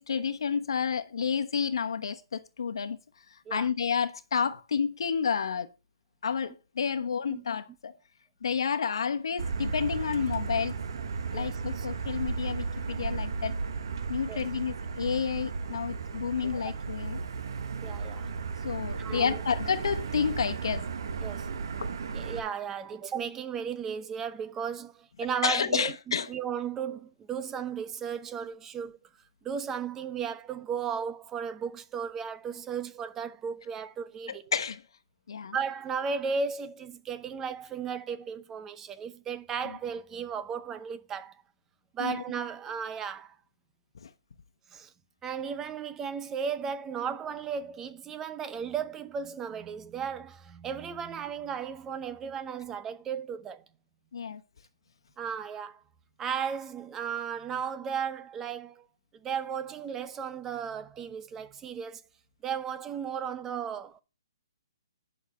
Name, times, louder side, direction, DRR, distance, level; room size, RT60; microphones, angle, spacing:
voice 1, 0.0-3.0 3.3-5.7 6.2-8.0 8.4-10.8 11.3-13.6 14.1-17.2 18.6-20.8 21.8-21.9 25.4-26.3 34.3-34.8 35.3-35.5 39.7-39.8 42.0-42.2 44.0-44.1 54.1-54.4, left 6 dB, 75° left, 1.1 m, -30 dB
Motor vehicle (road), 9.4-22.4, right 5 dB, 60° right, 1.5 m, -35 dB
voice 2, 11.3-11.9 14.3-14.4 17.8-18.3 19.0-19.4 21.2-21.5 22.1-25.9 26.3-29.0 29.4-34.4 35.5-41.4 41.9-43.4 44.7-44.9 45.2-53.6 55.2-55.8 56.2-58.9 59.1-62.0 62.4-64.0, right 7 dB, 15° right, 0.7 m, -35 dB
10.5 x 6.4 x 4.3 m
hypercardioid pair, 160°, 3 cm